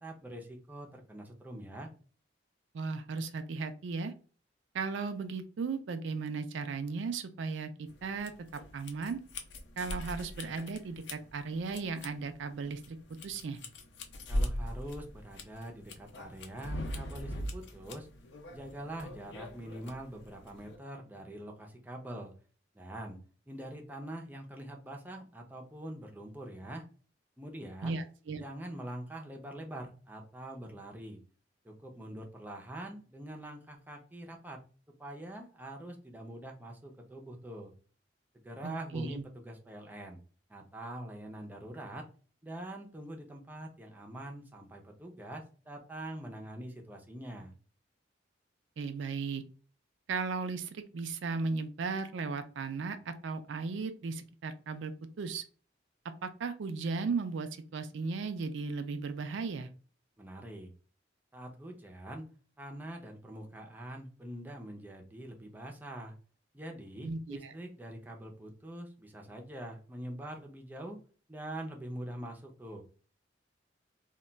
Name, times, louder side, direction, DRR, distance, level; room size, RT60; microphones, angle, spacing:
voice 1, 0.0-1.9 14.3-18.1 18.5-22.3 22.7-23.2 23.5-26.8 27.4-28.0 28.4-31.2 31.6-34.6 35.0-37.7 38.4-40.2 40.5-42.1 42.4-47.5 60.2-60.7 61.3-62.3 62.6-66.2 66.5-71.0 71.3-72.8, right 1 dB, 10° right, 1 dB, 0.4 m, -44 dB
voice 2, 2.7-4.1 4.7-9.2 9.8-13.0 13.2-13.6 27.8-28.4 38.6-39.2 48.8-49.4 50.1-54.9 55.2-55.4 56.2-59.7 67.0-67.5, right 4 dB, 75° right, 9 dB, 0.4 m, -36 dB
sound 1, 7.9-20.8, left 1 dB, 65° left, 0.5 m, -41 dB
2.2 x 2.2 x 3.8 m, 0.39 s
head